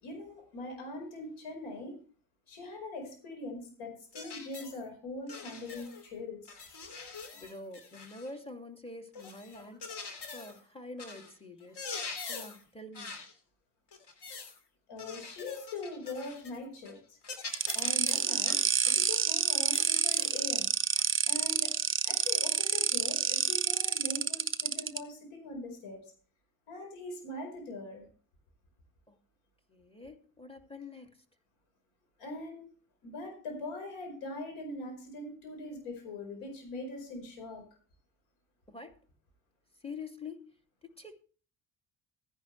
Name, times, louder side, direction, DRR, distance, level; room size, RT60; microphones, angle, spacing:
voice 1, 0.0-2.0 2.5-6.6 14.9-17.2 17.7-20.7 21.3-21.7 22.0-26.0 26.7-28.0 32.2-32.6 33.0-37.6, left 2 dB, 80° left, 4.9 m, -42 dB
sound 1, 4.1-4.8 5.3-6.1 6.5-8.4 9.1-10.6 11.0-11.3 11.6-12.6 12.9-13.3 13.9-14.6 15.0-16.6 16.9-17.0 17.2-19.1 19.7-20.4 21.0-21.1 22.2-22.4, left 4 dB, 55° left, 2.9 m, -44 dB
voice 2, 7.0-11.8 12.3-13.1 29.1-29.2 29.7-31.2 38.7-39.0 39.8-40.5 40.8-41.1, left 3 dB, 10° left, 2.5 m, -46 dB
sound 2, 17.5-25.0, right 6 dB, 25° right, 0.9 m, -28 dB
14.5 x 10.5 x 3.3 m
hypercardioid pair, 50°, 49 cm